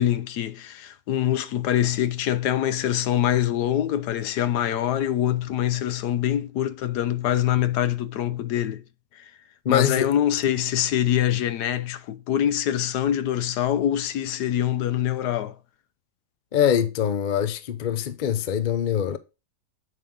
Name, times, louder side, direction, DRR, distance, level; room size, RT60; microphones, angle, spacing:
voice 1, 0.0-8.8 9.1-9.3 9.7-15.6, left 11 dB, 75° left, 1.2 m, -24 dB
voice 2, 9.6-10.1 16.5-19.2, left 9 dB, 55° left, 0.5 m, -23 dB
7.9 x 5.5 x 3.6 m
omnidirectional pair, 1.8 m